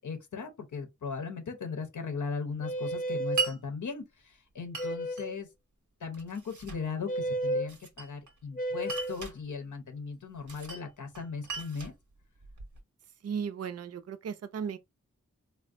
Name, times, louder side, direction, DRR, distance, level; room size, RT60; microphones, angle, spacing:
voice 1, 0.0-5.5 6.0-11.9, left 5 dB, 90° left, 0.7 m, -38 dB
sound 1, 2.6-3.5 4.8-5.4 7.1-7.7 8.5-9.2, right 1 dB, 30° left, 0.6 m, -32 dB
Glass, 3.4-3.6 4.7-5.3 6.1-6.9 7.7-8.4 8.8-9.4 10.5-10.9 11.2-12.8, right 5 dB, 80° right, 0.8 m, -37 dB
voice 2, 13.2-14.8, right 7 dB, 55° right, 0.4 m, -36 dB
3.4 x 2.1 x 2.5 m
wide cardioid pair, 60°, 30 cm